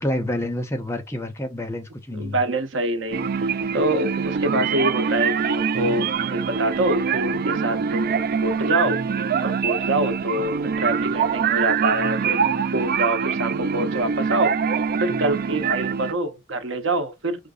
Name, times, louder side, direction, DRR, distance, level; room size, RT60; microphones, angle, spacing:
voice 1, 0.0-2.4 10.8-11.0, left 1 dB, 15° left, 0.7 m, -28 dB
voice 2, 2.1-9.0 9.4-14.5 15.0-17.5, right 1 dB, 75° right, 0.9 m, -26 dB
sound 1, 3.1-16.1, right 6 dB, 50° right, 0.3 m, -24 dB
5.1 x 3.8 x 2.4 m
head